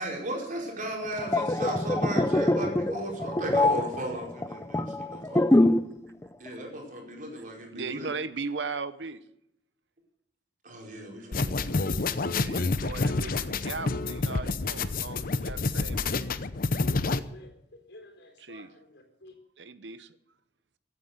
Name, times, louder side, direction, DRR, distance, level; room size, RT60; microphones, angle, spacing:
voice 1, 0.0-5.7 6.4-8.1 10.6-12.5, right 1 dB, 50° right, 0 dB, 4.7 m, -36 dB
sound 1, 1.1-6.0 6.2-6.5, left 1 dB, 15° left, 0.7 m, -24 dB
voice 2, 7.7-9.2 12.4-16.2 18.4-18.7 19.6-20.2, right 4 dB, 85° right, 13 dB, 0.9 m, -37 dB
sound 2, 11.3-17.2, left 3 dB, 55° left, 0.8 m, -28 dB
voice 3, 16.9-17.5 17.9-19.3, left 2 dB, 85° left, 4 dB, 4.0 m, -49 dB
15.5 x 9.6 x 8.1 m, 0.79 s
head